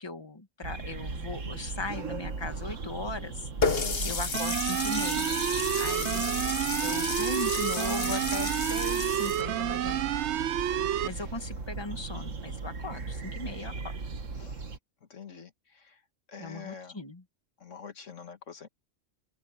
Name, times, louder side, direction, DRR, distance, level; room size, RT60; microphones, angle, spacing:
voice 1, 0.0-3.5 4.0-5.4 5.8-6.2 6.8-10.1 11.0-13.9 16.4-17.2, left 2 dB, 20° left, 1.9 m, -38 dB
sound 1, 0.6-14.8, right 4 dB, 85° right, 2.1 m, -38 dB
Water tap faucet, 3.6-9.4, left 5 dB, 50° left, 1.6 m, -32 dB
voice 2, 3.8-4.2 6.2-6.5 11.9-12.3 14.4-14.7 15.1-16.0 16.3-17.0 17.6-18.7, left 6 dB, 85° left, 2.0 m, -46 dB
sound 2, 4.3-11.1, right 11 dB, 70° right, 0.9 m, -30 dB
open air
omnidirectional pair, 1.3 m